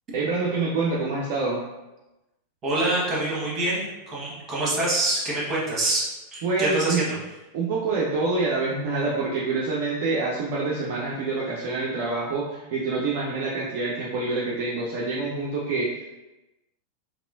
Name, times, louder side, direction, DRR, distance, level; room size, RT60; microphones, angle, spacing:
voice 1, 0.1-1.6 6.4-7.0 7.5-16.1, right 3 dB, 50° right, -4 dB, 0.5 m, -26 dB
voice 2, 2.6-6.0 6.3-7.1, right 1 dB, 25° right, -5 dB, 1.3 m, -25 dB
2.9 x 2.9 x 2.6 m, 1.0 s
figure-of-eight pair, 90°, 0 cm